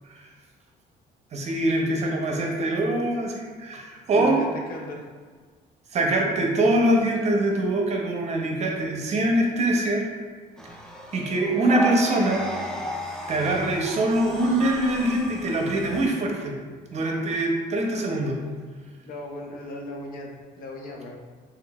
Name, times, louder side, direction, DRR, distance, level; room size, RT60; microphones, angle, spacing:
voice 1, 1.3-4.4 5.9-10.0 11.1-12.4 13.3-16.5 16.9-18.4, right 1 dB, 40° right, 1 dB, 0.6 m, -23 dB
voice 2, 4.1-5.1 19.0-21.2, left 1 dB, 60° left, 0 dB, 0.6 m, -37 dB
sound 1, 10.6-16.1, right 1 dB, 5° left, 0.4 m, -34 dB
3.7 x 3.2 x 2.3 m, 1.5 s
cardioid pair, 110°, 17 cm